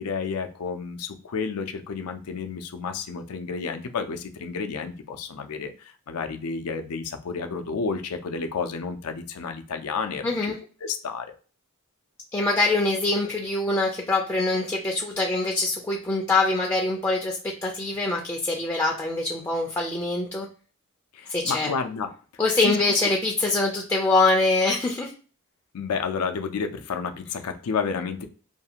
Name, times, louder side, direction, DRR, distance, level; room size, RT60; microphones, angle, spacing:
voice 1, 0.0-10.5 10.8-11.3 21.1-22.1 22.6-22.8 25.7-28.3, left 5 dB, 80° left, 6 dB, 0.5 m, -31 dB
voice 2, 10.2-10.6 12.3-20.5 21.3-21.7 22.4-25.1, left 2 dB, 15° left, -1 dB, 0.4 m, -24 dB
2.5 x 2.4 x 2.8 m, 0.38 s
head